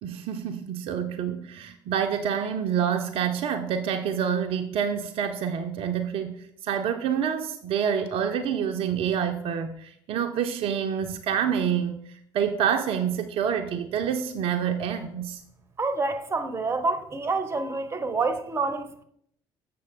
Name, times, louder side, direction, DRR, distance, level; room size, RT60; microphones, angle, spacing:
voice 1, 0.0-6.3 6.6-12.0 12.3-15.4, right 8 dB, 50° right, 0.6 m, -27 dB
voice 2, 15.8-19.0, right 3 dB, 20° right, 0.9 m, -28 dB
7.5 x 5.7 x 3.8 m
figure-of-eight pair, 55°, 12 cm